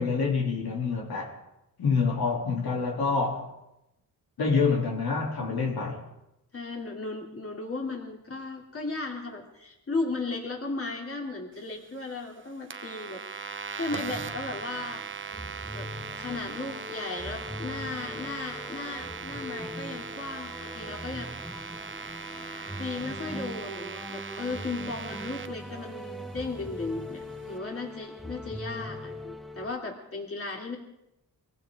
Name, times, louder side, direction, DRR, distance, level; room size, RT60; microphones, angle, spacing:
voice 1, 0.0-1.3 1.8-3.5 4.4-6.0, left 4 dB, 75° left, 3.3 m, -27 dB
voice 2, 6.5-13.2 13.7-15.0 15.7-15.9 16.1-21.3 22.8-30.8, left 3 dB, 35° left, 3.4 m, -36 dB
sound 1, 12.7-25.5, right 5 dB, 30° right, 0.9 m, -39 dB
sound 2, 14.0-29.8, left 1 dB, ahead, 1.2 m, -41 dB
24.0 x 15.5 x 3.8 m
cardioid pair, 75°, 37 cm